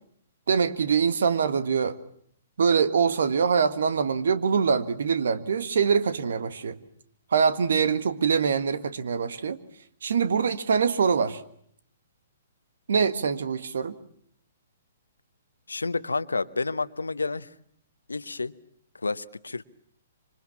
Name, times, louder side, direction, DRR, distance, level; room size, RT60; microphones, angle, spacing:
voice 1, 0.5-1.9 2.6-6.8 7.3-9.6 10.0-11.4 12.9-14.0, right 6 dB, 65° right, 11 dB, 1.8 m, -24 dB
voice 2, 15.7-17.5 18.1-18.5 18.9-19.6, left 3 dB, 85° left, 15 dB, 1.0 m, -30 dB
26.5 x 25.0 x 7.3 m, 0.67 s
figure-of-eight pair, 125°, 0 cm